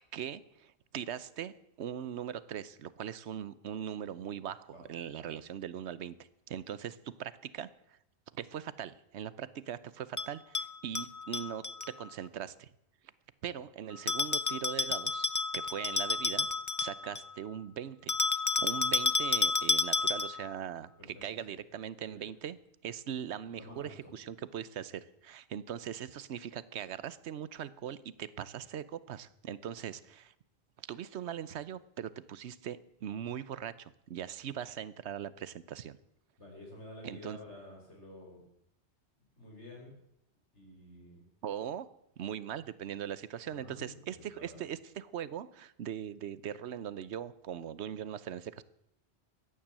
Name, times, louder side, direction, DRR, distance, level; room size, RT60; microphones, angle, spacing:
voice 1, 0.1-8.0 8.3-12.7 13.4-16.5 16.8-18.2 18.6-22.6 22.8-30.3 30.8-36.0 37.0-37.4 41.4-48.6, right 9 dB, 75° right, 17 dB, 1.0 m, -40 dB
Bell, 10.2-11.9 14.1-17.3 18.1-20.5, left 4 dB, 30° left, 0.3 m, -31 dB
voice 2, 23.5-24.1 36.4-38.5 39.4-39.9 40.5-41.2 43.5-44.6, left 1 dB, 85° left, 0 dB, 5.2 m, -50 dB
14.5 x 10.0 x 7.4 m, 0.79 s
omnidirectional pair, 1.1 m